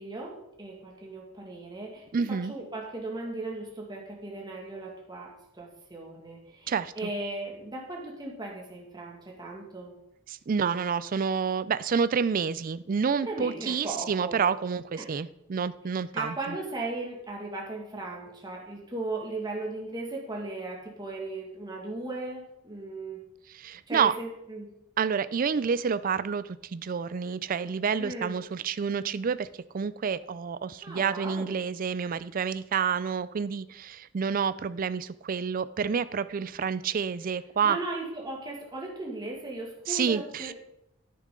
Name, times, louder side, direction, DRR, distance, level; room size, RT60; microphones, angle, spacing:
voice 1, 0.0-9.9 13.2-14.4 14.9-15.1 15.9-23.2 23.9-24.7 28.0-28.3 30.8-31.5 37.6-40.5, right 2 dB, 20° right, -2 dB, 2.0 m, -37 dB
voice 2, 2.1-2.5 6.7-6.9 10.3-16.6 23.5-24.1 25.0-29.5 29.7-37.8 39.9-40.5, right 6 dB, 40° right, 16 dB, 0.4 m, -29 dB
10.0 x 9.5 x 3.8 m, 0.82 s
head